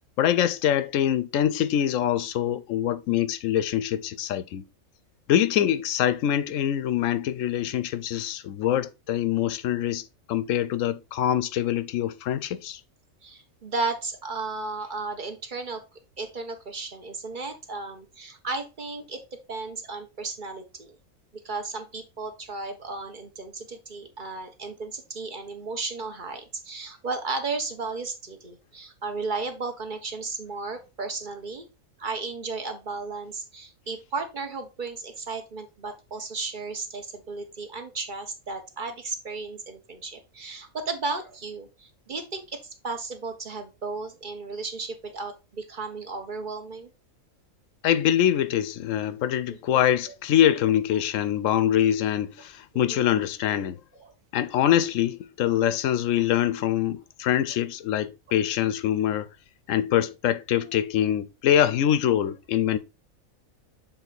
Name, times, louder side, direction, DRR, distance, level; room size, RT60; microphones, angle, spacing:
voice 1, 0.2-4.6 5.3-10.0 10.3-12.8 47.8-53.8 54.3-59.3 59.7-62.8, left 11 dB, 70° left, 0.9 m, -24 dB
voice 2, 13.2-15.8 16.2-21.0 21.4-31.7 32.0-46.9 49.5-50.1 52.7-53.2 54.0-54.1 55.5-55.6 58.3-58.4 59.1-59.2, right 3 dB, 40° right, 1.1 m, -34 dB
7.1 x 3.7 x 4.0 m
omnidirectional pair, 1.5 m